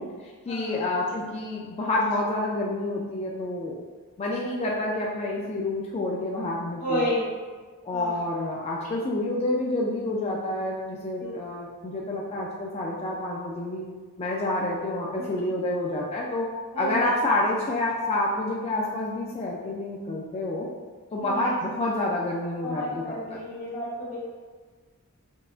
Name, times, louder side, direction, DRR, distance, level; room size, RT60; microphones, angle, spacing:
voice 1, 0.0-3.8 4.2-7.1 7.8-13.9 14.2-16.5 16.7-20.7 21.1-23.0 23.3-23.4, left 2 dB, 30° left, -3 dB, 0.3 m, -28 dB
voice 2, 6.8-7.3 7.9-8.2 11.2-11.3 15.2-15.4 16.7-17.1 21.2-21.4 22.6-24.2, equal, 75° left, -7 dB, 1.4 m, -31 dB
5.4 x 2.4 x 2.4 m, 1.5 s
head